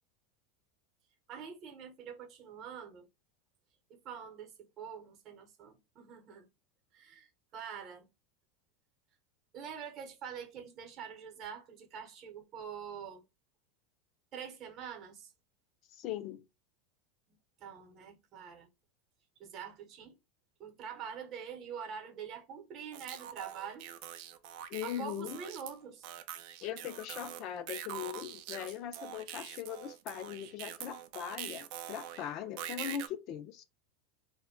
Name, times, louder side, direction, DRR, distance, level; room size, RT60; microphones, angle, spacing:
voice 1, 1.3-3.1 3.9-6.5 6.9-8.1 9.5-13.2 14.3-15.3 17.3-18.7 19.4-20.2 20.6-23.9 24.8-26.1, right 7 dB, 45° right, 0.8 m, -45 dB
voice 2, 15.9-16.4 24.7-25.4 26.6-33.6, left 10 dB, 50° left, 0.4 m, -40 dB
sound 1, 22.9-25.7 26.0-33.1, right 10 dB, 60° right, 0.4 m, -44 dB
2.1 x 2.1 x 3.6 m
supercardioid pair, 110°, 0 cm